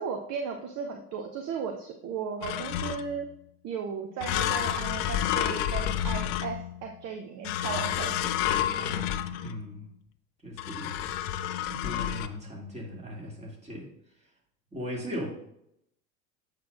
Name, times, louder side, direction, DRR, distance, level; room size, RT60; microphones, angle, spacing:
voice 1, 0.0-3.3 3.6-8.4, right 6 dB, 35° right, 4 dB, 0.7 m, -36 dB
sound 1, 2.4-3.2 4.2-6.9 7.4-9.7 10.6-12.3, left 11 dB, 40° left, 0.4 m, -30 dB
voice 2, 8.4-9.9 10.4-10.9 11.7-13.9 14.2-14.3 14.7-15.3, equal, 15° right, -2 dB, 2.2 m, -38 dB
8.0 x 6.5 x 2.5 m, 0.76 s
figure-of-eight pair, 70°, 48 cm